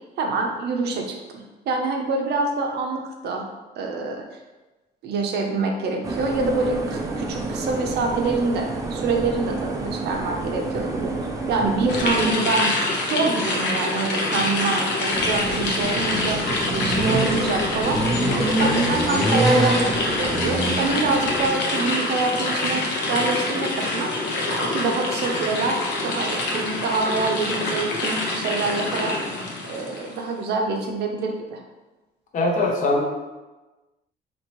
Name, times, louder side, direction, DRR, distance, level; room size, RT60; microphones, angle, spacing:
voice 1, 0.2-1.1 1.7-3.4 3.8-4.2 5.0-11.1 11.5-12.7 13.0-18.0 18.6-24.1 24.5-29.1 29.7-31.6, right 3 dB, 65° right, 2 dB, 0.6 m, -25 dB
sound 1, 6.0-12.3, right 3 dB, 20° right, 0.3 m, -29 dB
sound 2, 11.9-30.2, left 2 dB, 75° left, 0.8 m, -26 dB
sound 3, 15.1-21.5, right 1 dB, ahead, 0.7 m, -25 dB
voice 2, 18.3-18.7 32.3-33.0, left 2 dB, 45° left, -1 dB, 0.7 m, -23 dB
4.4 x 2.9 x 2.9 m, 1.2 s
cardioid pair, 170°, 18 cm